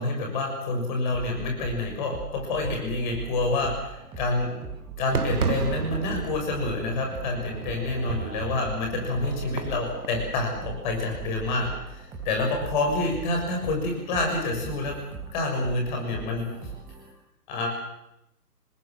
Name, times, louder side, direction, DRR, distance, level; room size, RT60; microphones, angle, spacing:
voice 1, 0.0-4.6 5.0-15.0 15.3-16.5 17.5-17.7, left 2 dB, 30° left, 1 dB, 6.6 m, -28 dB
sound 1, 1.1-17.1, right 5 dB, 10° right, 4.0 m, -40 dB
Fireworks, 5.1-10.2, right 5 dB, 65° right, 2.1 m, -33 dB
27.5 x 20.5 x 7.6 m, 0.85 s
figure-of-eight pair, 145°, 48 cm